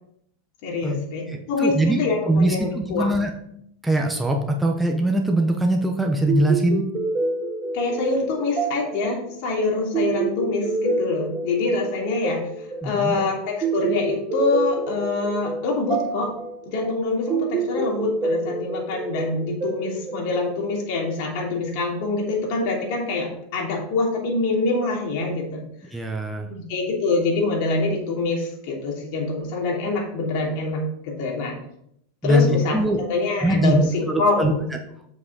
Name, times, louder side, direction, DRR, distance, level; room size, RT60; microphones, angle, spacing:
voice 1, 0.6-3.1 7.7-12.4 12.8-16.4 16.7-25.6 26.5-31.6 32.2-34.7, left 3 dB, 60° left, -1 dB, 3.0 m, -25 dB
voice 2, 1.3-2.0 2.3-3.3 3.8-6.8 12.8-13.2 25.9-26.5 32.2-33.0 33.4-33.8 34.1-34.5, right 1 dB, 5° right, 2 dB, 0.9 m, -22 dB
sound 1, 6.3-21.0, right 3 dB, 25° right, 1.6 m, -28 dB
7.4 x 6.2 x 4.0 m, 0.72 s
supercardioid pair, 130°, 0 cm